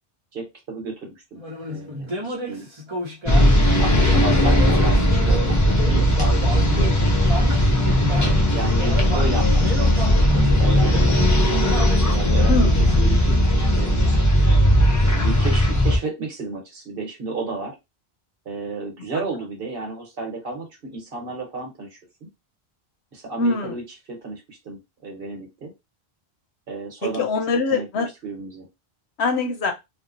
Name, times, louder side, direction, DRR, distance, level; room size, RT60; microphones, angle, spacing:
voice 1, 0.3-1.4 1.7-2.7 3.3-7.1 8.2-11.4 12.1-14.2 15.0-17.7 18.4-22.0 23.1-23.8 24.1-25.7 26.7-27.2 27.7-28.6, right 3 dB, 60° right, 1.2 m, -32 dB
sound 1, 1.4-3.5 3.9-6.9 7.2-13.0, left 1 dB, 30° right, 0.7 m, -31 dB
sound 2, 3.3-16.0, equal, 30° left, 0.3 m, -18 dB
voice 2, 3.4-3.9 6.8-6.9 12.5-12.8 23.4-23.8 27.0-28.1 29.2-29.7, left 3 dB, 90° left, 0.9 m, -24 dB
2.7 x 2.1 x 2.5 m
omnidirectional pair, 1.1 m